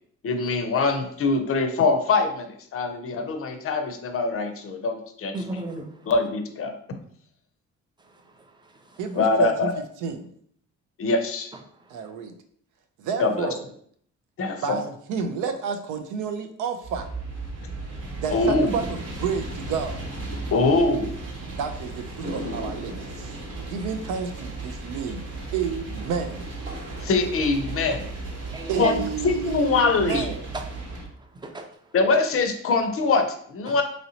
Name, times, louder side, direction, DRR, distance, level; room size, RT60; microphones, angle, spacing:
voice 1, 0.2-2.5 2.7-5.4 6.1-6.7 9.2-9.7 11.0-11.5 13.2-13.5 14.4-14.8 18.3-18.7 20.5-21.2 27.0-28.1 28.8-30.3 31.9-33.8, left 3 dB, 50° left, 0.5 m, -23 dB
voice 2, 5.3-5.9 8.1-8.2 8.6-9.0 28.5-29.0 30.5-30.6 31.3-31.7 33.7-33.8, right 2 dB, 15° right, 0.4 m, -34 dB
voice 3, 9.0-9.7 10.0-10.3 11.9-12.4 13.0-13.6 14.6-17.1 18.2-20.0 21.5-25.2 25.5-26.5 28.7-30.5, right 6 dB, 90° right, 0.5 m, -30 dB
sound 1, 16.8-31.0, right 2 dB, 55° right, 1.0 m, -35 dB
sound 2, 22.2-28.7, equal, 30° right, 1.0 m, -41 dB
3.0 x 2.7 x 2.7 m
cardioid pair, 90°, 30 cm